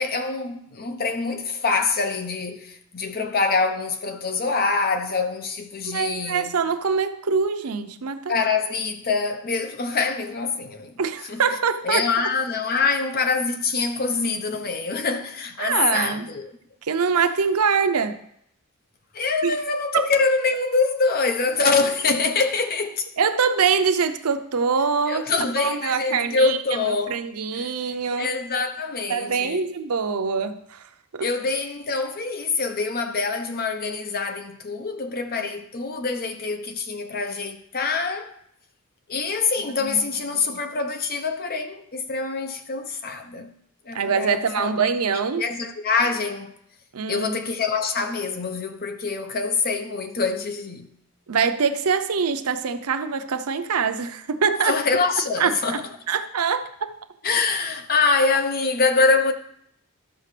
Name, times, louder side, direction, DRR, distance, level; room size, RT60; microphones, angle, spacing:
voice 1, 0.0-6.6 8.3-11.4 11.8-16.5 19.1-23.1 25.1-27.1 27.5-27.7 28.2-29.7 31.2-38.3 39.1-43.5 43.9-44.7 45.4-46.5 47.1-50.9 54.6-55.9 57.2-59.3, left 4 dB, 45° left, 0.9 m, -25 dB
voice 2, 5.9-8.3 11.0-12.3 15.6-16.3 16.8-18.2 19.4-19.5 19.9-20.1 23.2-25.3 25.6-28.3 29.1-31.3 39.8-40.0 40.3-40.6 43.9-45.5 46.9-47.4 51.3-54.8 55.4-57.0, right 6 dB, 85° right, 0.7 m, -24 dB
12.5 x 5.8 x 3.3 m
head